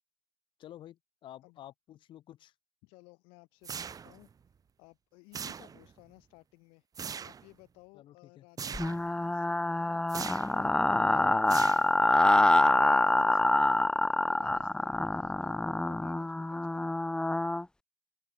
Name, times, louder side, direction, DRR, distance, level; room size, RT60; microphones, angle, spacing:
voice 1, 0.6-2.5 7.9-8.4, left 12 dB, 70° left, 4.2 m, -50 dB
voice 2, 2.8-4.3 4.8-17.0, left 28 dB, 85° left, 2.9 m, -58 dB
sound 1, 3.6-4.3 5.3-6.0 6.9-7.5 8.6-9.1 10.1-10.6 11.5-12.2, right 6 dB, 45° right, 1.0 m, -40 dB
sound 2, 8.7-17.6, left 1 dB, 10° left, 0.5 m, -26 dB
open air
supercardioid pair, 60°, 9 cm